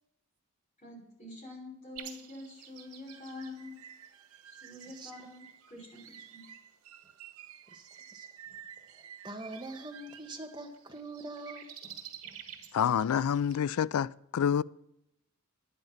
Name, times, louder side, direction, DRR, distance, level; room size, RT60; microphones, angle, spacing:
voice 1, 0.8-3.7 4.5-6.5, left 2 dB, 30° left, 5.4 m, -46 dB
sound 1, 2.0-13.6, right 9 dB, 90° right, 2.1 m, -52 dB
sound 2, 2.8-10.6, right 9 dB, 70° right, 0.7 m, -52 dB
voice 2, 4.9-5.3 7.7-12.6, right 2 dB, 20° right, 1.3 m, -45 dB
voice 3, 12.7-14.6, left 8 dB, 80° left, 0.3 m, -28 dB
11.0 x 10.5 x 5.8 m
head